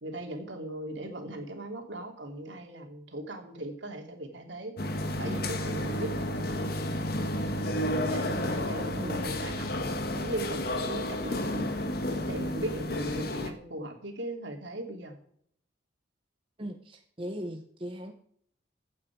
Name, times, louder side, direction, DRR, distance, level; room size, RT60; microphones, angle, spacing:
voice 1, 0.0-4.7 5.2-6.7 7.6-7.8 8.1-9.7 10.0-11.7 12.2-15.2, right 1 dB, 70° right, 3 dB, 2.8 m, -38 dB
sound 1, 4.8-13.5, left 1 dB, 50° left, 1.5 m, -31 dB
voice 2, 8.9-9.3 16.6-18.1, equal, 25° right, 4 dB, 1.0 m, -39 dB
16.0 x 8.5 x 4.7 m, 0.64 s
head